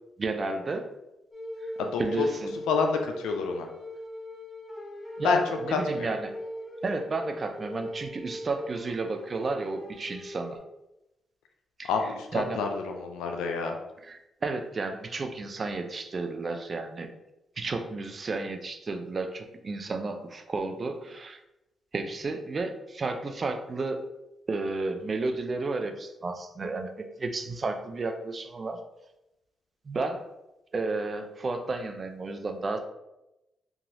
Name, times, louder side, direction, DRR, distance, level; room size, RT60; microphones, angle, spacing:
voice 1, 0.2-0.9 1.6-1.7 2.0-2.6 5.2-5.4 5.7-6.3 6.8-10.6 11.8-11.9 12.3-12.6 14.0-17.1 17.6-21.4 21.9-24.1 24.5-28.8 29.9-30.3 30.7-32.8, right 3 dB, 45° right, 6 dB, 0.4 m, -32 dB
sound 1, 1.3-10.6, equal, 40° left, 1.0 m, -39 dB
voice 2, 1.8-2.3 2.7-3.7 5.2-5.4 5.7-6.1 11.9-13.8, left 5 dB, 85° left, 3 dB, 0.4 m, -28 dB
2.9 x 2.4 x 2.7 m, 0.91 s
supercardioid pair, 50°, 0 cm